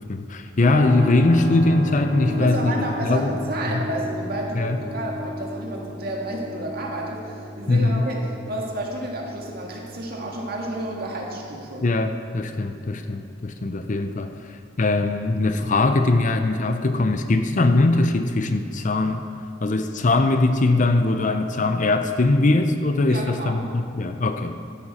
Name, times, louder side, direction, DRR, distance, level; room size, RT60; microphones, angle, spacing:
voice 1, 0.0-2.7 3.0-3.3 3.7-3.8 4.6-4.8 7.7-8.1 11.8-19.2 19.6-24.5, left 2 dB, 45° left, 7 dB, 0.6 m, -21 dB
Keyboard (musical), 0.6-13.0, left 1 dB, 35° right, 2.9 m, -34 dB
voice 2, 2.3-8.2 8.5-11.8 23.1-23.6, right 1 dB, 55° right, -1 dB, 1.9 m, -31 dB
12.5 x 11.0 x 4.3 m, 2.5 s
head